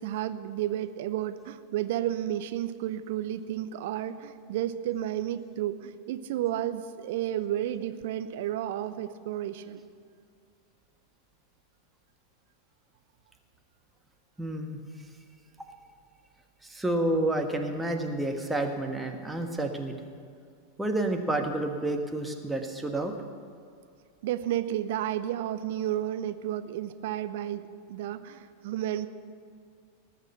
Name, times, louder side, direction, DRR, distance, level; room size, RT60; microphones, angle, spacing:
voice 1, 0.0-9.8 24.2-29.1, right 12 dB, 55° right, 11 dB, 0.7 m, -32 dB
voice 2, 14.4-14.8 16.6-19.9 20.8-23.1, right 1 dB, 5° right, 3 dB, 1.4 m, -29 dB
18.5 x 6.8 x 8.0 m, 2.3 s
figure-of-eight pair, 90°, 0 cm